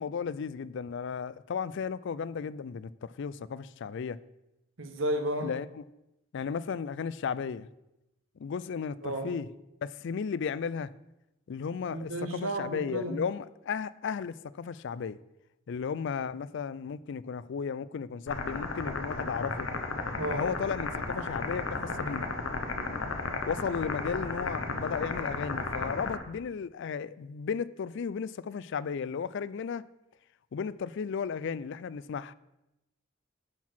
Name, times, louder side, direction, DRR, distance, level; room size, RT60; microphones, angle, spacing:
voice 1, 0.0-4.2 5.4-5.8 6.3-7.7 8.4-9.5 9.8-10.9 11.5-15.2 15.7-19.7 20.3-22.3 23.5-29.9 30.5-32.3, left 6 dB, 65° left, 0.4 m, -34 dB
voice 2, 4.8-5.5 9.0-9.3 11.9-13.2 20.1-20.5, right 1 dB, 75° right, 1.3 m, -32 dB
sound 1, 18.3-26.2, left 3 dB, 80° left, 1.1 m, -34 dB
11.5 x 4.6 x 5.9 m
head